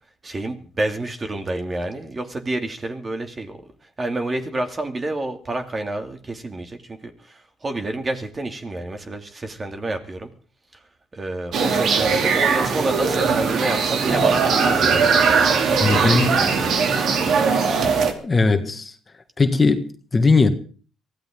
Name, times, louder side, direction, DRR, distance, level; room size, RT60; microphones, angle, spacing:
voice 1, 0.2-3.6 4.0-10.3 11.1-15.4 15.7-16.9, right 2 dB, 25° right, 2.6 m, -29 dB
sound 1, 11.5-18.1, right 5 dB, 60° right, 2.9 m, -19 dB
voice 2, 15.8-16.3 18.2-18.9 19.4-20.5, left 4 dB, 25° left, 2.0 m, -18 dB
23.5 x 16.0 x 3.9 m
cardioid pair, 105°, 0 cm